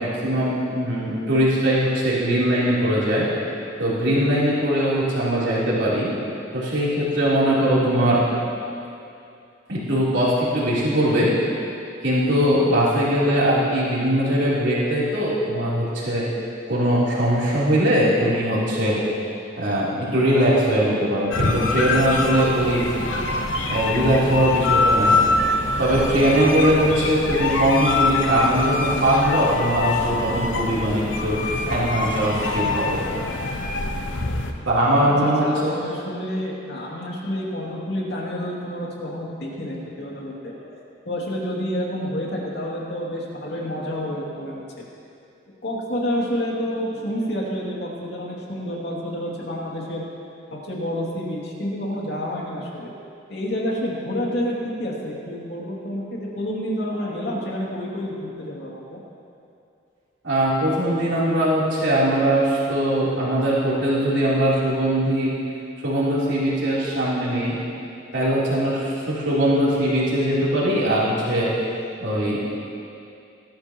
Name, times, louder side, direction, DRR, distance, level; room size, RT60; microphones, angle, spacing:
voice 1, 0.0-3.3 3.8-6.1 6.5-8.2 9.7-11.3 12.0-16.3 16.7-19.0 19.6-22.9 23.7-25.2 25.8-31.4 31.7-33.0 34.7-35.7 60.2-65.3 65.8-67.6 68.1-71.5 72.0-72.5, right 1 dB, 75° right, -8 dB, 3.6 m, -21 dB
sound 1, 21.3-34.5, left 3 dB, 80° left, 1.0 m, -24 dB
voice 2, 35.1-40.7 41.1-44.6 45.6-50.0 50.6-52.9 53.3-59.0, equal, 60° left, -4 dB, 2.6 m, -29 dB
19.5 x 13.0 x 3.0 m, 2.6 s
head